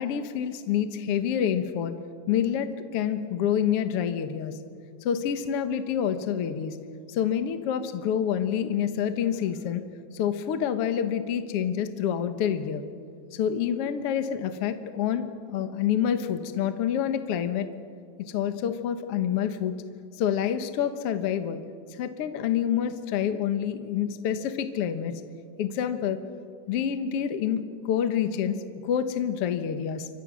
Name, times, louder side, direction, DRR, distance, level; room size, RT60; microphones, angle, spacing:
voice 1, 0.0-2.0 2.3-4.6 5.0-6.8 7.1-9.8 10.1-12.8 13.3-17.7 18.2-19.8 20.2-21.6 22.0-25.2 25.6-26.2 26.7-30.1, left 9 dB, 70° left, 8 dB, 1.4 m, -27 dB
28.5 x 25.0 x 6.3 m, 2.3 s
omnidirectional pair, 4.4 m